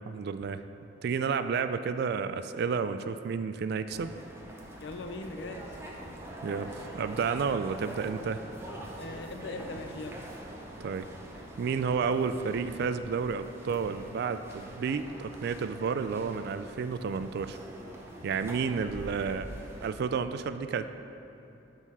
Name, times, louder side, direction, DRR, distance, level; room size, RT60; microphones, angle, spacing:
voice 1, 0.0-0.6 1.0-4.1 6.4-8.4 10.8-11.1 11.6-17.6 18.2-19.5 19.8-20.9, right 5 dB, 60° right, 11 dB, 0.3 m, -31 dB
sound 1, 3.9-19.9, right 1 dB, 15° right, 0.8 m, -44 dB
voice 2, 4.8-5.7 6.0-6.2 9.0-10.2 18.2-18.3, left 2 dB, 65° left, 6 dB, 0.5 m, -40 dB
12.0 x 4.0 x 4.2 m, 3.0 s
head